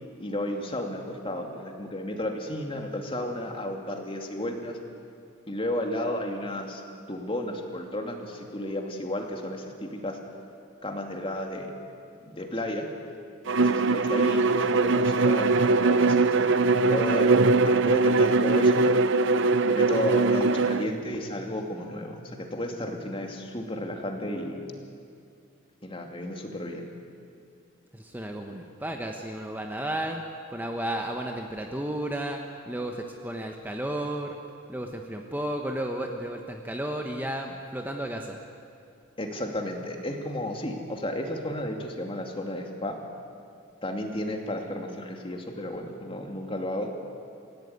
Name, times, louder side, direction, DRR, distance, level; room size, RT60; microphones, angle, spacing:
voice 1, 0.2-4.8 5.5-6.8 7.1-10.2 10.8-11.7 12.2-12.9 13.6-17.3 17.6-18.9 19.6-24.7 25.8-26.9 39.2-43.0 43.8-46.9, left 1 dB, 25° left, 3 dB, 2.6 m, -33 dB
Bowed string instrument, 13.5-20.9, right 3 dB, 60° right, 0.7 m, -21 dB
voice 2, 27.9-30.2 30.5-34.4 34.7-38.4, right 1 dB, 10° right, 2 dB, 1.2 m, -33 dB
27.0 x 16.5 x 9.6 m, 2.4 s
head